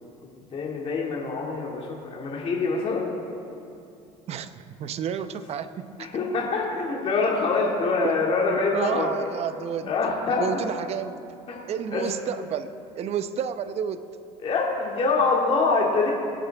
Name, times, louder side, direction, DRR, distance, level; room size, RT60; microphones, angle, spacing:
voice 1, 0.5-3.1 6.0-9.1 9.8-10.5 11.5-11.6 11.9-12.1 14.4-16.1, left 4 dB, 40° left, -3 dB, 2.2 m, -25 dB
voice 2, 4.3-6.1 8.4-9.9 10.4-11.2 11.7-12.7 13.0-14.0, right 8 dB, 45° right, 11 dB, 0.8 m, -31 dB
26.5 x 8.9 x 3.5 m, 2.6 s
supercardioid pair, 100°, 14 cm